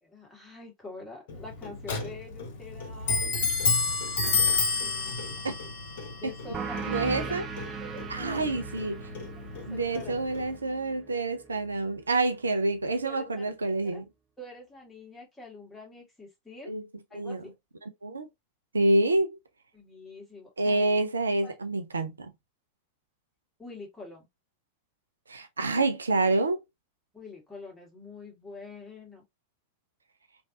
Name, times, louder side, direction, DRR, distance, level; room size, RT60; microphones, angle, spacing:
voice 1, 0.0-3.4 4.8-5.4 6.2-7.3 7.8-8.6 9.4-10.2 13.0-13.5 13.8-14.0 14.4-16.7 17.1-17.5 19.7-20.9 21.4-21.5 23.6-24.3 27.1-29.2, left 3 dB, 10° left, 1.6 m, -46 dB
Clock, 1.3-10.6, left 4 dB, 55° left, 1.0 m, -31 dB
sound 1, 6.5-11.7, right 5 dB, 25° right, 0.5 m, -39 dB
voice 2, 6.9-7.5 8.1-9.0 9.7-14.0 16.7-16.8 17.1-17.4 18.0-18.3 18.7-19.4 20.6-22.3 25.3-26.6, right 2 dB, 75° right, 0.5 m, -27 dB
3.2 x 2.6 x 2.7 m
figure-of-eight pair, 90°, 0 cm